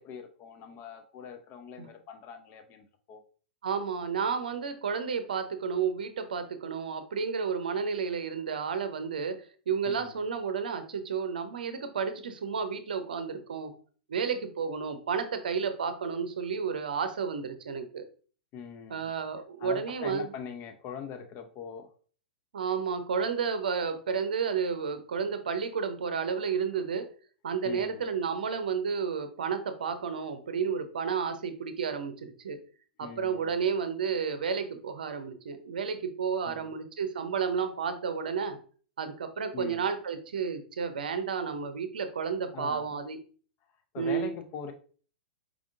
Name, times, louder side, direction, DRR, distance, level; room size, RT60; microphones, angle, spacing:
voice 1, 0.0-3.2 9.8-10.2 18.5-19.1 19.6-21.9 27.6-28.1 33.0-33.6 36.4-36.7 39.5-39.8 42.5-43.0 43.9-44.7, left 7 dB, 30° left, 6 dB, 0.6 m, -42 dB
voice 2, 3.6-9.4 9.7-13.7 14.1-18.0 18.9-20.3 22.5-27.1 27.4-32.6 33.0-38.6 39.0-43.2 44.0-44.3, right 6 dB, 60° right, 9 dB, 0.7 m, -31 dB
4.8 x 3.6 x 2.5 m, 0.41 s
figure-of-eight pair, 100°, 5 cm